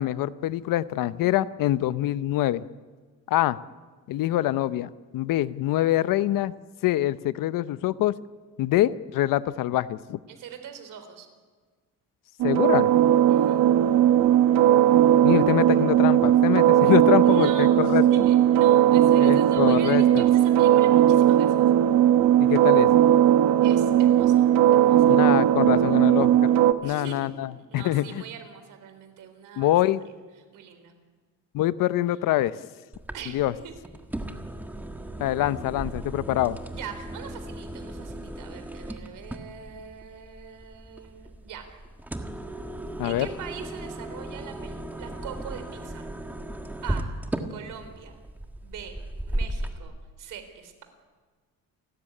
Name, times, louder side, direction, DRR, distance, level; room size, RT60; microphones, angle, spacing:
voice 1, 0.0-2.6 3.3-3.6 4.1-6.5 6.8-8.1 8.6-10.2 12.4-12.9 15.2-18.3 19.2-20.0 22.4-22.9 25.1-26.5 26.8-28.2 29.6-30.0 31.5-32.6 33.3-33.5 35.2-36.6 43.0-43.3, left 14 dB, 75° left, 16 dB, 0.8 m, -25 dB
voice 2, 10.3-11.3 13.3-13.6 17.3-21.6 23.6-24.4 24.7-25.2 26.8-29.8 30.5-30.9 33.1-33.4 33.6-33.7 36.7-41.7 43.0-46.0 46.8-47.1 47.5-48.2 48.6-49.0 49.3-50.8, right 7 dB, 65° right, 8 dB, 4.0 m, -42 dB
sound 1, 12.4-26.7, right 11 dB, 85° right, 1.2 m, -18 dB
sound 2, 32.9-49.8, right 1 dB, 5° right, 1.5 m, -36 dB
29.0 x 14.0 x 10.0 m, 1.5 s
cardioid pair, 165°, 33 cm